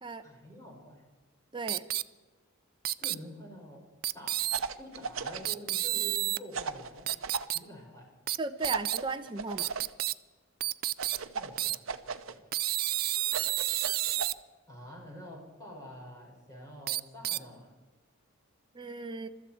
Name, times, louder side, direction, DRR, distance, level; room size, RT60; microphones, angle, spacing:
voice 1, 0.2-1.1 2.9-3.9 4.1-4.5 4.8-7.1 7.5-8.1 11.3-11.8 12.3-12.4 14.7-17.7, equal, 15° left, -3 dB, 6.2 m, -47 dB
voice 2, 1.5-1.8 8.4-9.7 18.7-19.3, right 3 dB, 25° right, 6 dB, 0.8 m, -36 dB
sound 1, 1.7-2.0 2.9-3.2 4.0-4.6 5.5-6.4 7.1-7.6 8.3-8.4 8.6-9.0 9.6-10.1 10.6-11.2 11.6-11.8 12.5-14.3 16.9-17.4, right 15 dB, 45° right, 0.4 m, -30 dB
sound 2, 4.5-5.5 6.5-7.5 8.6-9.9 11.0-12.3 13.3-14.3, right 5 dB, 70° right, 0.9 m, -37 dB
22.5 x 13.5 x 4.6 m, 1.2 s
head